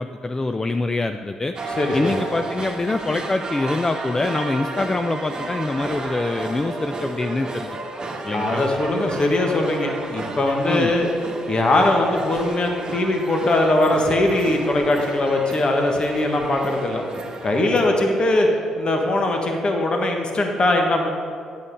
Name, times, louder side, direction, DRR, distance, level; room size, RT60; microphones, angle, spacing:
voice 1, 0.0-1.5 1.9-7.8 8.2-8.6 10.6-10.9, left 2 dB, 25° left, 7 dB, 0.4 m, -25 dB
sound 1, 1.6-17.8, right 2 dB, 35° right, 1.4 m, -32 dB
voice 2, 1.8-2.2 8.2-11.1 11.5-17.0 17.4-18.5 18.8-21.1, left 2 dB, 40° left, 2 dB, 1.4 m, -21 dB
8.9 x 7.3 x 4.8 m, 2.3 s
hypercardioid pair, 55°, 2 cm